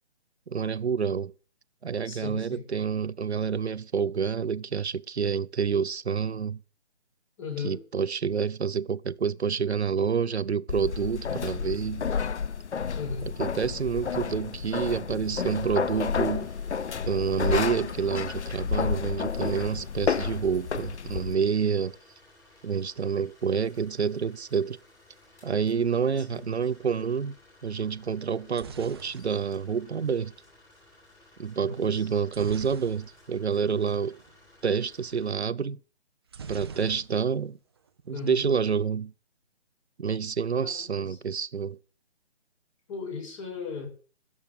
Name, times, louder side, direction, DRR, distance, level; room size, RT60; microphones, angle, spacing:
voice 1, 0.5-1.3 1.8-6.6 7.6-12.1 13.4-16.5 17.1-22.0 22.6-24.8 25.4-27.3 27.6-30.3 31.4-34.2 34.6-35.8 36.5-37.6 38.1-39.1 40.0-41.8, right 6 dB, 75° right, 0.7 m, -28 dB
voice 2, 2.0-2.6 7.4-7.8 12.9-13.3 26.3-26.5 31.6-32.2 38.1-38.5 40.6-41.2 42.9-43.9, left 4 dB, 30° left, 6.4 m, -37 dB
sound 1, 10.7-21.3, left 6 dB, 90° left, 0.6 m, -31 dB
sound 2, 15.4-35.3, left 2 dB, 10° left, 6.2 m, -57 dB
sound 3, 28.2-30.4 32.3-33.5 33.8-33.9 34.1-34.4 36.3-37.5 37.8-38.4, right 5 dB, 25° right, 0.7 m, -44 dB
14.5 x 7.4 x 8.2 m
figure-of-eight pair, 150°, 33 cm